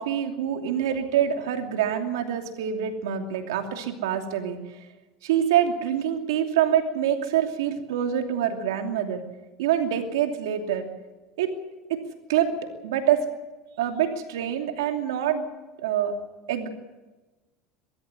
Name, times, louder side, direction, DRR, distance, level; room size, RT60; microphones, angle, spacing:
voice 1, 0.0-4.6 5.2-9.2 9.6-10.9 11.4-11.5 11.9-12.0 12.3-12.6 12.8-13.2 13.8-15.4 15.8-16.1 16.5-16.7, right 9 dB, 90° right, 5 dB, 2.8 m, -25 dB
22.0 x 14.0 x 9.8 m, 1.2 s
supercardioid pair, 105°, 2 cm